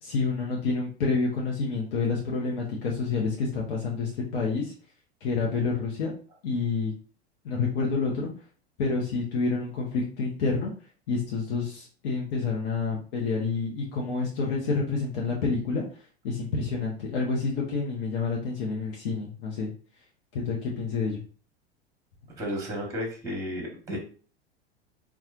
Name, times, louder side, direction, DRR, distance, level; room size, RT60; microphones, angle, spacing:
voice 1, 0.0-4.7 5.2-6.1 6.4-6.9 7.4-8.3 8.8-10.7 11.1-15.8 16.2-19.7 20.3-21.2, left 4 dB, 60° left, -3 dB, 0.9 m, -28 dB
voice 2, 22.4-24.0, equal, 10° right, -1 dB, 1.2 m, -33 dB
4.2 x 2.4 x 2.4 m, 0.41 s
figure-of-eight pair, 90°, 33 cm